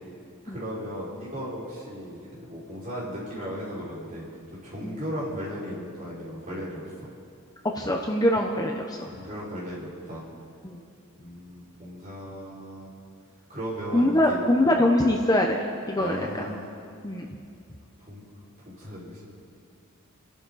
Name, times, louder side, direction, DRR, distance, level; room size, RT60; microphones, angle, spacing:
voice 1, 0.4-4.2 4.6-7.1 9.0-10.2 11.2-12.9 13.5-14.8 16.0-16.7 18.0-18.2 18.6-19.3, equal, 35° right, -8 dB, 5.4 m, -36 dB
voice 2, 7.7-9.1 10.6-10.8 13.9-16.5 17.0-17.3, left 1 dB, 15° left, 1 dB, 0.9 m, -24 dB
29.0 x 12.0 x 4.2 m, 2.4 s
head